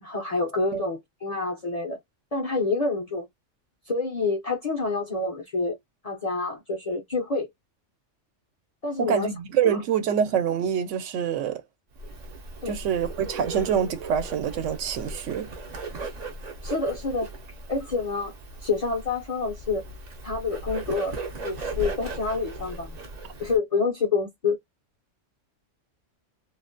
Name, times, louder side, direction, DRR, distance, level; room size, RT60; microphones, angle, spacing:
voice 1, 0.0-2.0 2.3-3.3 3.9-5.8 6.0-7.5 8.8-9.3 9.6-9.8 12.6-12.8 16.6-17.3 17.7-18.3 18.6-19.8 20.2-21.2 21.4-23.0 23.4-24.6, left 3 dB, 50° left, 0.5 m, -27 dB
voice 2, 9.0-11.6 12.7-15.5, right 8 dB, 85° right, 0.9 m, -26 dB
Bird, 12.0-23.6, right 2 dB, 55° right, 0.5 m, -37 dB
2.4 x 2.1 x 2.4 m
omnidirectional pair, 1.2 m